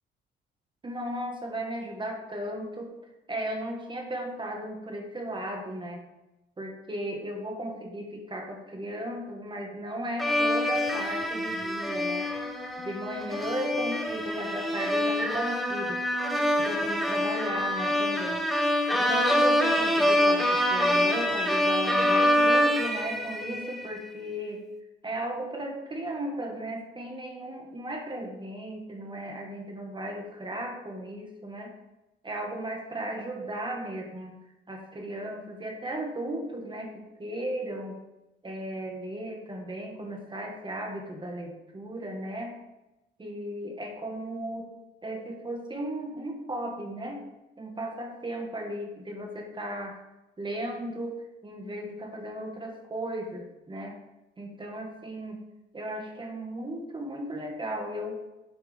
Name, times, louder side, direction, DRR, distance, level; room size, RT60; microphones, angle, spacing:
voice 1, 0.8-2.9 3.3-6.0 6.6-12.3 12.8-16.1 16.6-18.4 18.9-24.6 25.0-31.7 32.2-34.3 34.7-38.0 38.4-42.6 43.2-44.7 45.0-47.3 47.6-50.0 50.4-54.0 54.4-55.4 55.7-58.3, right 1 dB, 25° right, 2 dB, 1.3 m, -35 dB
sound 1, 10.2-23.9, left 1 dB, ahead, 0.9 m, -26 dB
9.7 x 4.4 x 3.4 m, 0.97 s
cardioid pair, 90°, 20 cm